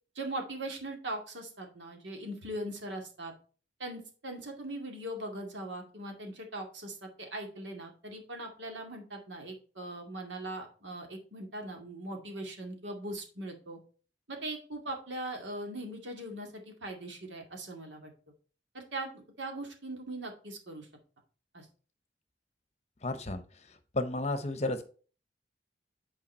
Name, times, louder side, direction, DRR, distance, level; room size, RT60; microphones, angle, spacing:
voice 1, 0.2-3.3 3.8-13.8 14.3-18.1 18.7-20.9 21.5-21.7, right 1 dB, 80° right, 2 dB, 2.2 m, -40 dB
voice 2, 23.0-23.4 23.9-24.8, left 2 dB, 35° left, 10 dB, 0.8 m, -32 dB
8.8 x 4.7 x 4.3 m, 0.39 s
head